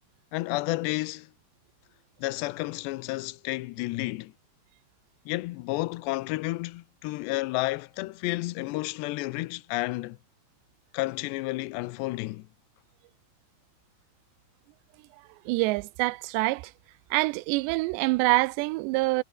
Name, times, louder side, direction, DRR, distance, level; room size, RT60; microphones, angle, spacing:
voice 1, 0.3-1.3 2.2-4.3 5.3-10.2 10.9-12.5, left 20 dB, 80° left, 2.9 m, -31 dB
voice 2, 15.5-16.7 17.1-19.2, right 23 dB, 85° right, 2.7 m, -25 dB
omnidirectional pair, 5.0 m